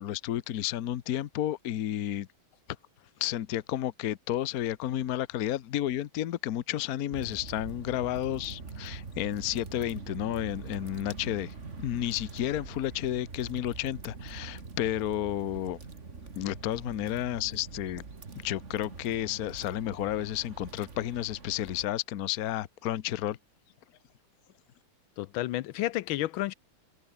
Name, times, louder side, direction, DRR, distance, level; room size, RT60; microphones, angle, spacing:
voice 1, 0.0-2.3 3.2-15.8 16.4-18.0 18.4-23.4, left 12 dB, 60° left, 1.1 m, -32 dB
sound 1, 7.1-21.8, right 4 dB, 35° right, 2.5 m, -44 dB
voice 2, 25.2-26.5, left 15 dB, 80° left, 1.4 m, -31 dB
omnidirectional pair, 2.2 m